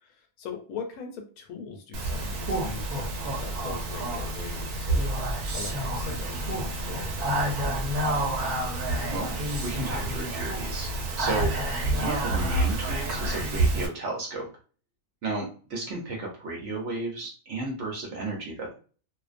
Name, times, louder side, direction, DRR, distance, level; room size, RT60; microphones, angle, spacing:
voice 1, 0.0-8.1, left 5 dB, 75° left, 4 dB, 1.0 m, -41 dB
Speech, 1.9-13.9, right 1 dB, 85° right, 1.1 m, -28 dB
voice 2, 8.5-11.5 11.9-14.5 15.2-18.8, right 2 dB, 60° right, -1 dB, 0.8 m, -34 dB
2.5 x 2.0 x 2.4 m, 0.39 s
omnidirectional pair, 1.6 m